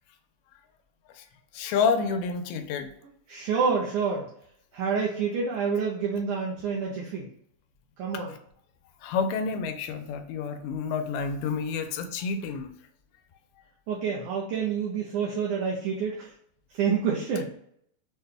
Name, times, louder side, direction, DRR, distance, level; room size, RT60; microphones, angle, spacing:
voice 1, 1.5-2.9 8.3-8.4 9.0-12.7, left 5 dB, 85° left, 7 dB, 2.4 m, -29 dB
voice 2, 3.3-4.3 4.7-7.3 8.0-8.3 13.9-16.3 16.7-17.5, right 6 dB, 80° right, -3 dB, 1.8 m, -28 dB
6.3 x 2.2 x 3.3 m, 0.68 s
omnidirectional pair, 4.3 m